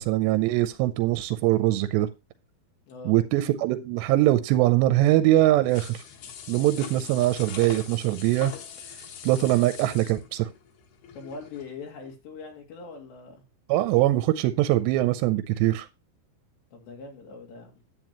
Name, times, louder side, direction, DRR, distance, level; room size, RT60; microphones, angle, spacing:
voice 1, 0.0-2.1 3.1-6.0 6.5-8.5 9.2-10.5 13.7-15.9, right 15 dB, 90° right, 11 dB, 2.8 m, -22 dB
sound 1, 5.7-11.7 12.0-12.1, left 7 dB, 70° left, 3.5 m, -42 dB
voice 2, 11.1-13.4 16.7-17.8, left 4 dB, 85° left, 1 dB, 4.6 m, -42 dB
10.5 x 9.0 x 3.0 m, 0.26 s
omnidirectional pair, 4.9 m